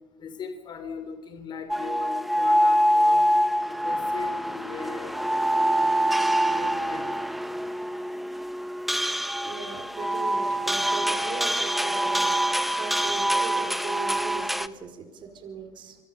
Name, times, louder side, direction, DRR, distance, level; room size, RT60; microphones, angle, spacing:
voice 1, 0.2-3.3 3.7-5.1 5.7-6.0 6.4-7.1, left 6 dB, 40° left, 7 dB, 3.1 m, -39 dB
sound 1, 1.7-14.7, equal, ahead, 1.1 m, -25 dB
voice 2, 9.4-16.0, right 5 dB, 45° right, 5 dB, 4.8 m, -39 dB
26.5 x 23.0 x 7.1 m, 1.1 s
supercardioid pair, 110°, 11 cm